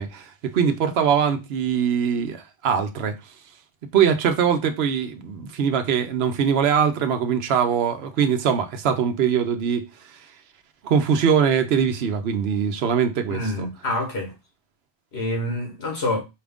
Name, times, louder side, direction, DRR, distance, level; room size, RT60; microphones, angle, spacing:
voice 1, 0.0-3.2 3.9-10.2 10.8-13.7, right 7 dB, 75° right, 0.9 m, -22 dB
voice 2, 13.3-14.3 15.1-16.2, left 1 dB, 80° left, 1.6 m, -27 dB
4.6 x 2.5 x 3.5 m
omnidirectional pair, 1.1 m